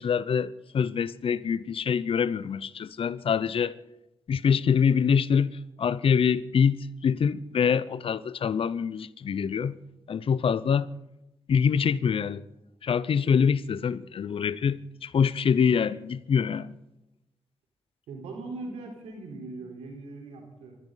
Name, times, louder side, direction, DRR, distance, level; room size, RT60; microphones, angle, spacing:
voice 1, 0.0-3.8 4.3-5.5 5.8-9.8 10.1-10.9 11.5-12.4 12.8-16.7, left 7 dB, 60° left, 0.7 m, -25 dB
voice 2, 18.1-20.8, right 3 dB, 90° right, 4.1 m, -40 dB
27.0 x 13.0 x 4.0 m
supercardioid pair, 50°, 10 cm